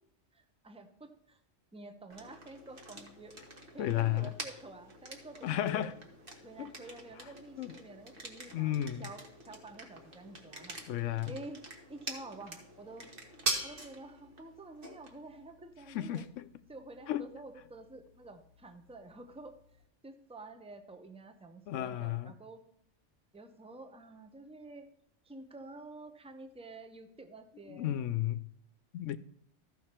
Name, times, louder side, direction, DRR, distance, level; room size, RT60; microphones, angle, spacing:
voice 1, 0.3-1.4 1.7-3.3 3.7-5.9 6.4-8.7 9.0-10.8 11.3-11.6 11.9-13.1 13.6-16.2 16.7-19.6 20.0-22.6 23.3-24.9 25.2-28.0, right 2 dB, 5° right, 0.7 m, -49 dB
sound 1, 2.1-19.8, right 2 dB, 50° right, 1.7 m, -45 dB
voice 2, 3.8-4.3 5.4-5.9 6.6-6.7 7.6-7.7 8.5-9.1 10.9-11.3 15.9-16.5 17.1-17.3 21.7-22.3 27.7-28.4 28.9-29.2, left 12 dB, 85° left, 0.9 m, -33 dB
14.0 x 5.7 x 4.3 m
omnidirectional pair, 1.2 m